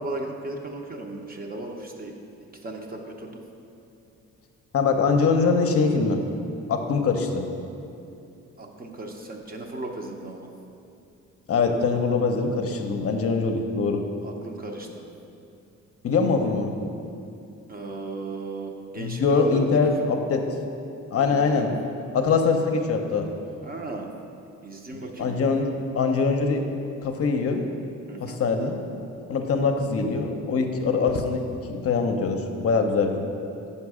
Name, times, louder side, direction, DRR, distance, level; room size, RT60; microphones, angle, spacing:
voice 1, 0.0-2.1 2.4-3.4 8.6-10.5 14.2-15.0 17.7-20.1 21.2-21.7 23.6-24.1 24.6-25.5 28.1-28.4, right 2 dB, 30° right, 2 dB, 0.7 m, -36 dB
voice 2, 4.7-6.2 6.7-7.4 11.5-14.0 16.0-16.7 19.0-20.5 21.1-21.7 22.1-23.3 24.9-26.6 27.0-27.7 28.2-28.8 29.3-33.2, left 4 dB, 50° left, 4 dB, 0.6 m, -23 dB
5.5 x 5.3 x 4.8 m, 2.7 s
cardioid pair, 90°, 30 cm